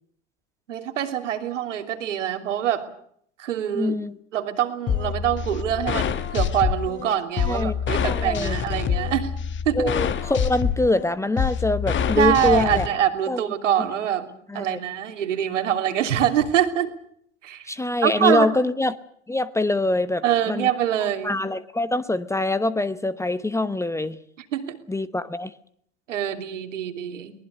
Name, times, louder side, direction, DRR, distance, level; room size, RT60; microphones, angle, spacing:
voice 1, 0.7-2.9 3.4-3.9 4.3-9.3 9.6-9.9 12.2-14.3 14.5-16.9 17.4-17.7 18.0-18.5 20.2-21.4 24.5-24.8 26.1-27.3, right 10 dB, 80° right, 6 dB, 3.2 m, -24 dB
voice 2, 3.7-4.1 7.4-7.7 8.0-8.6 9.7-12.9 13.3-13.4 14.5-14.8 17.7-19.0 19.3-20.7 21.2-24.2 24.9-25.5, left 2 dB, 10° left, 15 dB, 0.9 m, -24 dB
sound 1, 4.9-12.9, left 7 dB, 30° left, 1.6 m, -26 dB
22.5 x 19.5 x 8.2 m, 0.66 s
hypercardioid pair, 95°, 36 cm